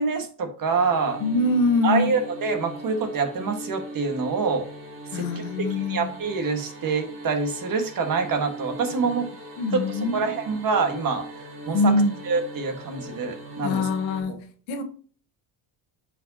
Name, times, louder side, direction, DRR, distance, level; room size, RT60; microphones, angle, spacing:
voice 1, 0.0-1.2 1.8-4.6 5.1-5.4 5.9-9.2 9.7-9.8 10.1-11.2 11.7-11.9 12.3-13.9, right 4 dB, 40° right, 1.6 m, -26 dB
sound 1, 0.7-14.2, right 1 dB, 25° right, 2.5 m, -40 dB
voice 2, 1.2-2.1 5.1-6.1 9.6-10.3 11.7-12.1 13.6-14.8, left 2 dB, 70° left, 1.3 m, -24 dB
8.9 x 4.9 x 2.8 m
supercardioid pair, 100°, 49 cm